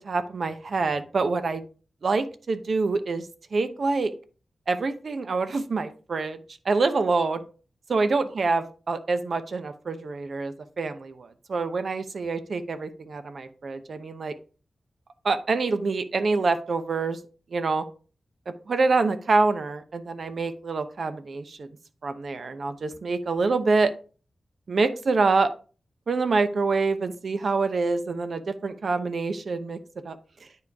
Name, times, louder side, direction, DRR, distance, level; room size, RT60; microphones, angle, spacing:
voice 1, 0.0-1.6 2.0-3.3 3.5-4.1 4.7-6.4 6.7-7.4 7.9-14.3 15.2-17.2 17.5-17.8 18.7-21.7 22.0-23.9 24.7-25.5 26.1-29.8 30.0-30.2, right 3 dB, 65° right, 10 dB, 0.8 m, -26 dB
9.4 x 4.9 x 3.5 m, 0.37 s
wide cardioid pair, 100°, 0 cm